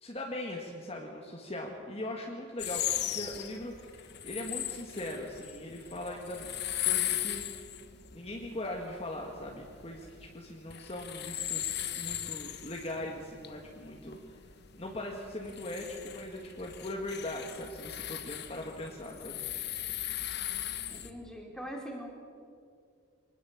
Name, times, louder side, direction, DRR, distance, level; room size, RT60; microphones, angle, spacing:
voice 1, 0.0-6.5 6.8-7.7 8.1-14.4 14.8-19.4, left 1 dB, 30° left, 0 dB, 1.9 m, -40 dB
sound 1, 2.6-21.1, left 12 dB, 50° left, 1.3 m, -38 dB
voice 2, 20.9-22.1, equal, 5° left, -1 dB, 3.7 m, -42 dB
24.5 x 20.0 x 7.2 m, 2.3 s
head